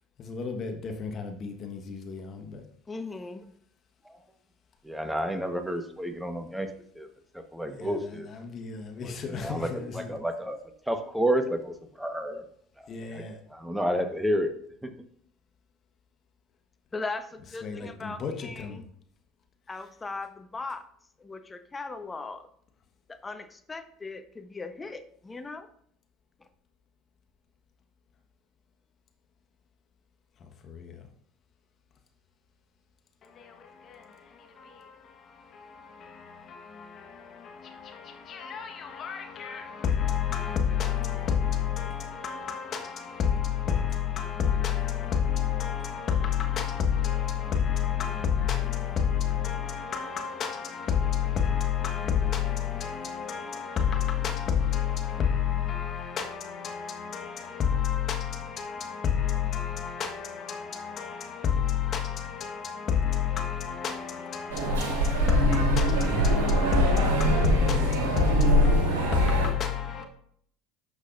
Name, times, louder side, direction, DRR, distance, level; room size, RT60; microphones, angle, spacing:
voice 1, 0.2-2.7 7.8-10.2 12.9-13.4 17.6-18.8 19.7-19.9 30.4-30.5 33.2-70.1, left 8 dB, 45° left, 4 dB, 1.4 m, -30 dB
voice 2, 2.9-3.4 16.9-18.8 19.7-20.8 21.2-22.4 23.2-25.7, left 3 dB, 20° left, 9 dB, 0.9 m, -38 dB
voice 3, 4.8-6.7 6.9-7.1 7.5-8.3 9.0-12.4 13.1-13.2 13.5-14.5 14.8-14.9, equal, 5° right, 6 dB, 1.3 m, -30 dB
sound 1, 64.5-69.5, right 1 dB, 80° right, 2.0 m, -23 dB
11.0 x 6.3 x 2.6 m, 0.64 s
hypercardioid pair, 70°, 0 cm